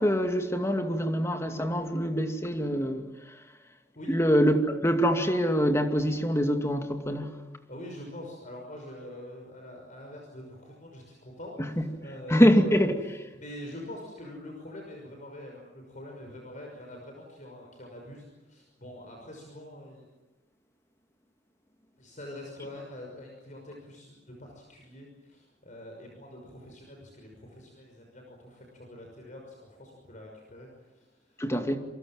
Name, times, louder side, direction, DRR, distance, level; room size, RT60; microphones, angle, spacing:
voice 1, 0.0-3.0 4.1-7.3 11.8-11.9 12.3-13.0 31.4-31.8, equal, 15° left, 2.4 m, -24 dB
voice 2, 7.7-12.9 13.3-20.0 22.0-31.4, left 1 dB, 45° left, 6.0 m, -45 dB
28.0 x 24.0 x 7.6 m
head